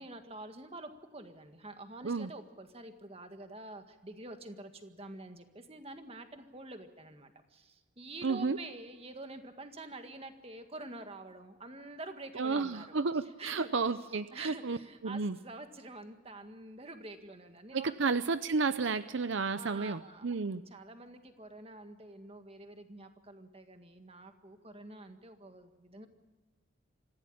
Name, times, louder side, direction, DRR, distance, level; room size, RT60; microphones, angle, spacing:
voice 1, 0.0-13.7 14.3-18.0 19.6-20.3 20.7-26.1, right 2 dB, 30° right, 6 dB, 1.8 m, -47 dB
voice 2, 8.2-8.6 12.3-14.8 15.0-15.4 17.7-20.6, right 4 dB, 65° right, 13 dB, 0.6 m, -32 dB
25.0 x 15.5 x 8.7 m, 1.3 s
head